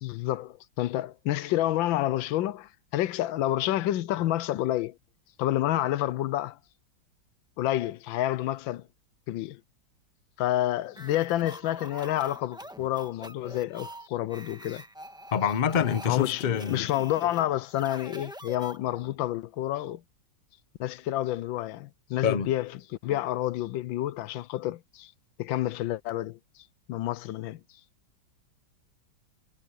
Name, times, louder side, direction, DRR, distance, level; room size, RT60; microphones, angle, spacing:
voice 1, 0.0-5.0 5.4-6.6 7.6-8.8 9.3-9.6 10.4-14.8 15.7-20.0 20.8-25.1 25.4-27.6, left 14 dB, 80° left, 1.4 m, -29 dB
sound 1, 10.9-19.2, right 1 dB, 5° right, 1.2 m, -45 dB
voice 2, 15.3-16.8 22.2-22.5, left 7 dB, 65° left, 0.4 m, -26 dB
omnidirectional pair, 2.1 m